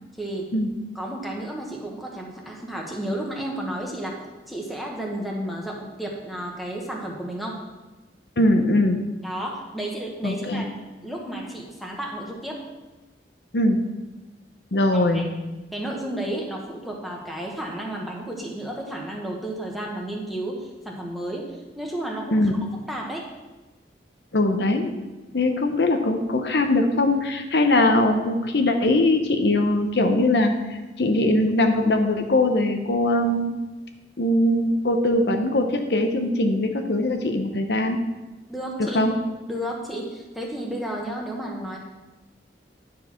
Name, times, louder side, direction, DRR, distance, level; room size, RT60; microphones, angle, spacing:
voice 1, 0.2-0.5 0.9-4.1 4.5-7.6 9.2-10.7 11.0-12.6 14.9-15.2 15.7-21.5 21.7-22.4 22.9-23.3 38.5-39.0 39.5-41.8, right 1 dB, ahead, -2 dB, 1.2 m, -32 dB
voice 2, 8.4-9.0 10.2-10.6 13.5-13.8 14.7-15.3 22.3-22.6 24.3-24.9 25.3-33.5 34.2-38.0 38.8-39.1, left 1 dB, 65° left, 5 dB, 0.8 m, -21 dB
10.0 x 4.8 x 5.7 m, 1.1 s
head